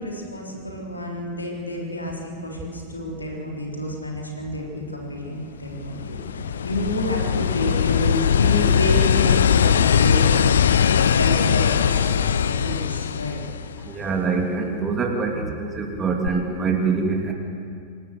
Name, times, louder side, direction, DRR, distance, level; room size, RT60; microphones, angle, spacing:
voice 1, 0.0-10.5 11.1-13.4 15.3-15.6, left 1 dB, 80° left, -1 dB, 3.6 m, -29 dB
sound 1, 5.6-14.1 16.3-16.4, left 8 dB, 65° left, 0.5 m, -20 dB
voice 2, 13.9-17.3, right 4 dB, 20° right, 1 dB, 2.9 m, -24 dB
26.5 x 13.0 x 8.0 m, 2.3 s
figure-of-eight pair, 90°, 0 cm